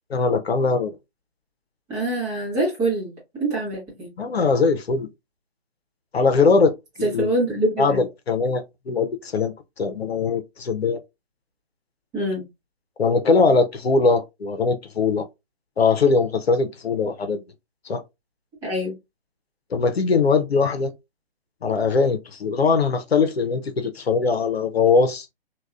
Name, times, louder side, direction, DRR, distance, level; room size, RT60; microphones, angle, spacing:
voice 1, 0.1-1.0 4.2-5.1 6.1-7.3 7.8-11.0 13.0-15.3 15.8-17.4 17.8-18.0 19.7-20.9 21.6-25.3, left 4 dB, 80° left, 0.7 m, -21 dB
voice 2, 1.9-3.1 3.4-4.1 7.0-8.0 12.1-12.4 18.6-18.9, right 1 dB, 10° right, 0.8 m, -24 dB
3.4 x 2.3 x 2.3 m
figure-of-eight pair, 145°, 31 cm